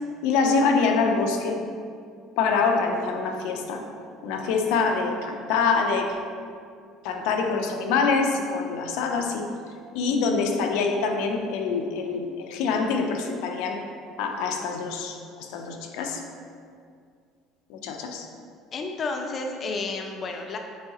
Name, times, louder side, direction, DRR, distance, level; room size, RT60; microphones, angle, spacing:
voice 1, 0.2-1.6 2.4-3.9 4.2-6.2 7.0-9.5 9.9-13.8 14.2-16.2 17.7-18.3, left 4 dB, 80° left, 4 dB, 0.7 m, -25 dB
voice 2, 18.7-20.6, left 3 dB, 35° left, 3 dB, 0.5 m, -31 dB
8.2 x 4.7 x 3.0 m, 2.2 s
cardioid pair, 140°, 0 cm